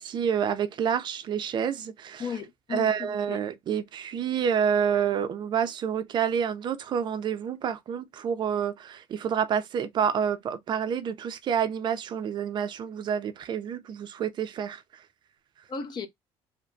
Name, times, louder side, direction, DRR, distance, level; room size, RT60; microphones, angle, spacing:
voice 1, 0.0-2.3 2.7-15.0, right 8 dB, 40° right, 0.4 m, -28 dB
voice 2, 2.2-3.4 15.7-16.1, left 6 dB, 40° left, 0.6 m, -35 dB
2.8 x 2.2 x 2.5 m
cardioid pair, 135°, 11 cm